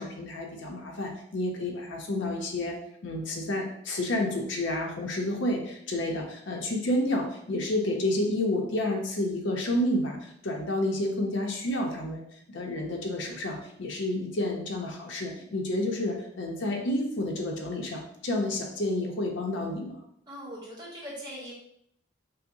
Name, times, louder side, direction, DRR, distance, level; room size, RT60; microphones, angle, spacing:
voice 1, 0.0-2.8 3.0-12.2 12.5-20.0, left 1 dB, 70° left, 1 dB, 0.6 m, -30 dB
voice 2, 15.2-15.5 20.3-21.5, equal, 20° right, -6 dB, 1.1 m, -41 dB
5.5 x 2.1 x 2.6 m, 0.72 s
head